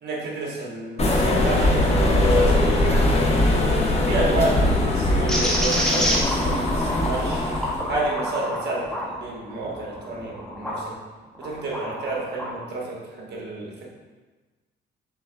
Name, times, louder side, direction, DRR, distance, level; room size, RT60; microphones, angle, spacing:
voice 1, 0.0-3.6 4.0-7.5 7.9-11.0 11.4-13.9, right 2 dB, 55° right, -3 dB, 1.2 m, -30 dB
sound 1, 1.0-7.9, left 1 dB, 30° left, 0.8 m, -21 dB
sound 2, 5.3-10.8 11.3-12.6, equal, 5° left, 0.9 m, -28 dB
5.8 x 3.7 x 2.3 m, 1.3 s
cardioid pair, 90°, 20 cm